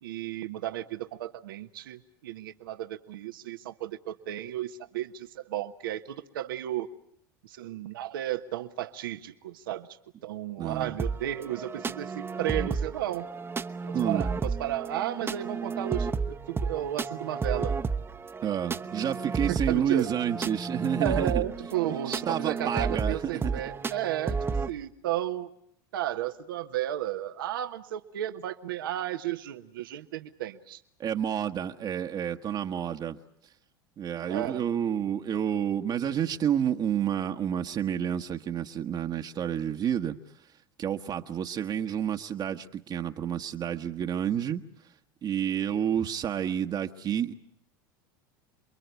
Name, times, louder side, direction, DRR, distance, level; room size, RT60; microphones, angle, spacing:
voice 1, 0.0-6.9 7.4-9.9 10.2-13.3 13.9-17.7 19.5-20.1 21.0-25.5 25.9-30.8 34.3-34.6, right 12 dB, 80° right, 8 dB, 1.3 m, -33 dB
voice 2, 10.6-10.9 13.9-14.3 18.4-21.4 22.1-23.5 31.0-33.2 34.0-40.2 40.8-44.6 45.2-47.3, right 9 dB, 40° right, 4 dB, 1.3 m, -29 dB
sound 1, 11.0-24.7, right 4 dB, 20° right, 1.1 m, -32 dB
28.5 x 22.5 x 8.2 m, 0.71 s
hypercardioid pair, 90°, 11 cm